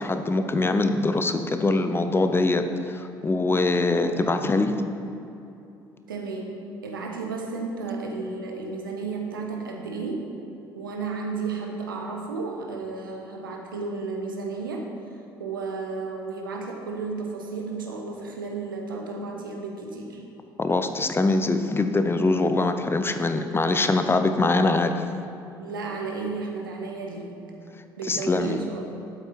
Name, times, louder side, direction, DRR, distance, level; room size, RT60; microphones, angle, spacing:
voice 1, 0.0-4.8 20.6-25.0 28.1-28.6, left 2 dB, 20° left, 8 dB, 0.8 m, -23 dB
voice 2, 6.1-6.5 6.8-10.3 10.7-14.9 15.4-20.2 25.6-27.4 28.0-29.0, right 4 dB, 80° right, 1 dB, 1.2 m, -33 dB
12.0 x 8.1 x 4.4 m, 2.7 s
figure-of-eight pair, 50°, 11 cm